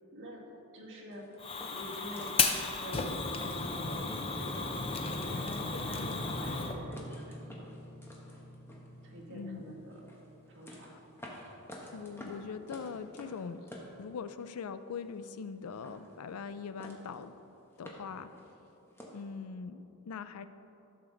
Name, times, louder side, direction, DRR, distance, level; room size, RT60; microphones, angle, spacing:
voice 1, 0.1-0.5 0.7-1.3 1.7-3.0 3.5-4.1 4.3-7.7 9.0-10.0 10.5-10.9, equal, 55° right, -4 dB, 1.8 m, -46 dB
sound 1, 1.1-4.5 4.9-5.0 5.3-5.9 6.2-9.4 9.9-14.6 14.9-15.5 15.7-16.5 16.8-17.3 17.6-19.3, equal, 10° left, 1.0 m, -50 dB
Fire, 1.4-6.7, left 4 dB, 25° left, 0.5 m, -34 dB
sound 2, 4.7-11.5 11.8-12.4 12.7-12.8, left 1 dB, 90° right, 1.6 m, -47 dB
voice 2, 9.3-9.6 10.9-11.0 11.9-13.7 14.0-17.3 17.8-18.4 19.1-20.5, left 5 dB, 85° left, 12 dB, 0.4 m, -42 dB
11.5 x 6.3 x 3.8 m, 2.9 s
head